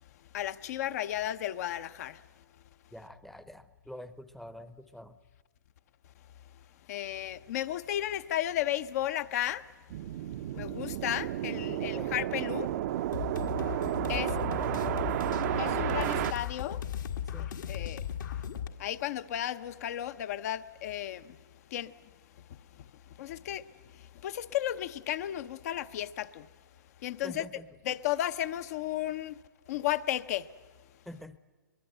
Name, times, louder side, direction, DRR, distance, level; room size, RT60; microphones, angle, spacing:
voice 1, 0.3-2.2 6.9-9.6 10.5-12.7 14.1-14.3 15.6-16.8 17.4-18.0 18.8-21.4 21.7-21.9 23.2-23.7 24.2-26.5 27.0-27.5 27.8-29.4 29.7-30.5, left 12 dB, 50° left, 0.8 m, -33 dB
voice 2, 2.9-5.2 11.7-12.2 14.2-15.2 17.3-17.5 27.2-27.7 31.1-31.4, left 1 dB, ahead, 0.8 m, -45 dB
sound 1, 9.9-16.3, right 13 dB, 50° right, 0.7 m, -32 dB
sound 2, 13.1-18.7, left 9 dB, 70° left, 1.7 m, -36 dB
22.5 x 21.5 x 7.9 m
hypercardioid pair, 130°, 11 cm